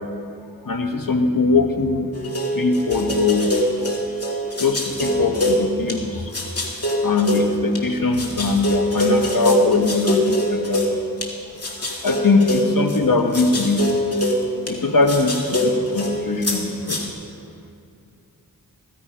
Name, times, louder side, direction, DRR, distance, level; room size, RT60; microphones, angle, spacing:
voice 1, 0.6-2.1 2.5-3.5 4.6-6.3 7.0-10.8 12.0-13.9 14.7-17.1, left 3 dB, 65° left, 5 dB, 1.3 m, -21 dB
sound 1, 2.1-6.0 6.3-7.8 8.1-11.3 11.6-14.8 15.1-17.1, equal, 40° left, 2.2 m, -23 dB
15.0 x 13.5 x 5.1 m, 2.4 s
wide cardioid pair, 55°, 36 cm